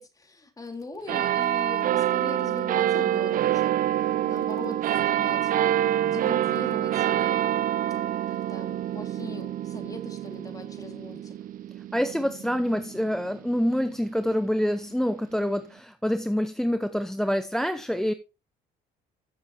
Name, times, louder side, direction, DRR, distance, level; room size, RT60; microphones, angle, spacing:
voice 1, 0.0-11.4, left 3 dB, 20° left, 2.5 m, -41 dB
sound 1, 1.1-14.0 14.6-14.7, right 12 dB, 55° right, 0.6 m, -26 dB
voice 2, 11.9-18.1, equal, 5° left, 0.7 m, -26 dB
14.5 x 7.3 x 3.0 m
cardioid pair, 110°, 17 cm